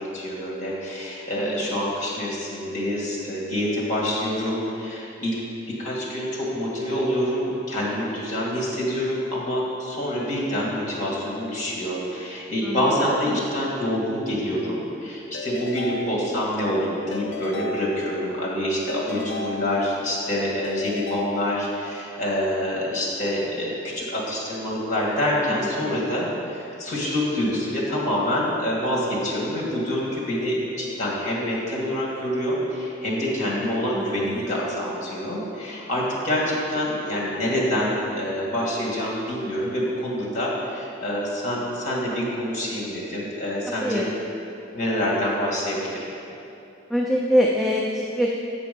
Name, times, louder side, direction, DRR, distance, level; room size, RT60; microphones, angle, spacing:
voice 1, 0.0-5.3 5.7-44.1 44.7-46.0, equal, 40° left, -4 dB, 1.7 m, -26 dB
voice 2, 1.4-1.8 12.6-13.1 19.1-19.5 25.9-26.0 33.9-34.0 34.5-34.6 43.8-44.1 46.9-48.4, equal, ahead, -3 dB, 0.4 m, -24 dB
Keyboard (musical) / Ringtone, 15.3-16.7 17.1-18.4 18.9-20.2 20.6-22.0, left 2 dB, 65° left, 0.5 m, -36 dB
8.3 x 5.1 x 5.2 m, 2.9 s
head